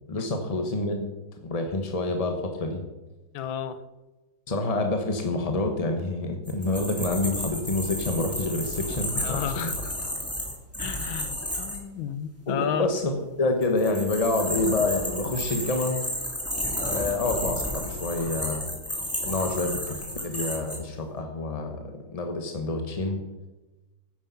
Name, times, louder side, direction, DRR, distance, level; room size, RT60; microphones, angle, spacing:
voice 1, 0.1-1.1 1.4-2.8 4.5-9.7 12.5-16.0 16.8-18.7 19.2-23.2, left 2 dB, 30° left, 4 dB, 0.6 m, -28 dB
voice 2, 3.3-3.8 9.1-9.9 10.8-12.9, left 9 dB, 75° left, 13 dB, 1.5 m, -32 dB
sound 1, 6.5-11.8 13.6-20.8, equal, 5° left, 2.5 m, -32 dB
10.0 x 9.4 x 5.7 m, 1.1 s
omnidirectional pair, 2.3 m